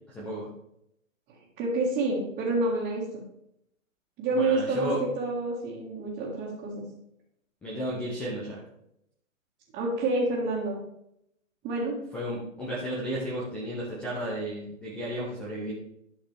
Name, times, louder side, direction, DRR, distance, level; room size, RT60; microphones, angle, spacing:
voice 1, 0.1-0.5 4.3-5.0 7.6-8.6 12.1-15.7, right 1 dB, 5° left, -7 dB, 0.4 m, -33 dB
voice 2, 1.3-3.2 4.2-6.8 9.7-10.8 11.6-12.0, right 2 dB, 20° right, -7 dB, 1.8 m, -28 dB
11.5 x 5.7 x 3.4 m, 0.79 s
figure-of-eight pair, 130°, 40 cm